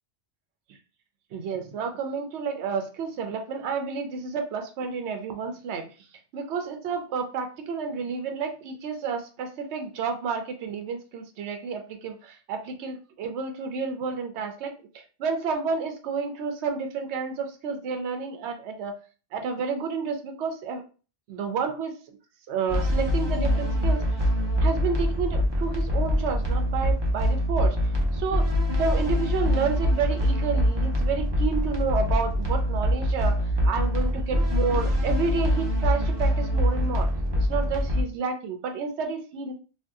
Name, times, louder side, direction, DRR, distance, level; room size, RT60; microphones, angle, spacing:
voice 1, 1.3-5.9 6.3-18.9 19.3-20.8 21.3-22.2 22.5-24.0 24.6-27.8 28.1-28.4 28.8-33.4 33.6-37.1 37.4-39.5, right 5 dB, 80° right, 5 dB, 0.9 m, -30 dB
sound 1, 22.7-38.0, equal, 30° right, 0.6 m, -24 dB
2.7 x 2.2 x 3.4 m, 0.35 s
omnidirectional pair, 1.1 m